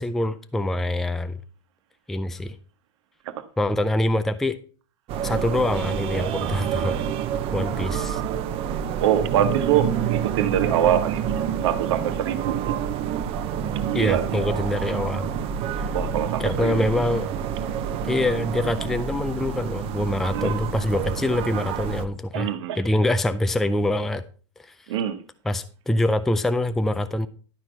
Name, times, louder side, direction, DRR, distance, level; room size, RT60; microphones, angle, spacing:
voice 1, 0.0-1.4 2.1-2.6 3.6-4.6 5.2-6.9 7.5-8.2 13.9-15.3 15.8-15.9 16.4-17.3 18.0-24.2 24.6-24.7 25.4-27.3, left 1 dB, ahead, 0.4 m, -25 dB
sound 1, 5.1-22.1, right 8 dB, 35° right, 0.8 m, -28 dB
voice 2, 9.0-12.7 13.7-14.3 15.9-16.7 20.3-20.5 22.3-22.8 24.9-25.2, right 10 dB, 65° right, 1.2 m, -24 dB
11.5 x 4.5 x 5.4 m
hypercardioid pair, 130°, 16 cm